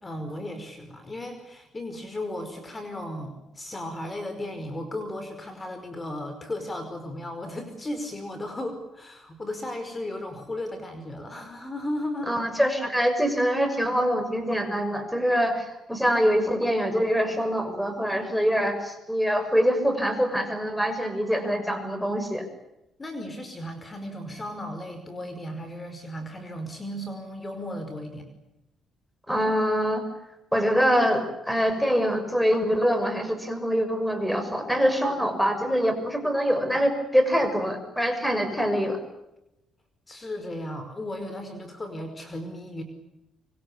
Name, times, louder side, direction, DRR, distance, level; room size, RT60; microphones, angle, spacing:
voice 1, 0.0-12.3 23.0-28.3 40.1-42.8, left 1 dB, 25° left, 8 dB, 5.1 m, -35 dB
voice 2, 12.3-22.5 29.3-30.0 30.5-39.0, equal, ahead, 8 dB, 6.6 m, -24 dB
25.0 x 25.0 x 8.5 m, 0.89 s
cardioid pair, 90°, 0 cm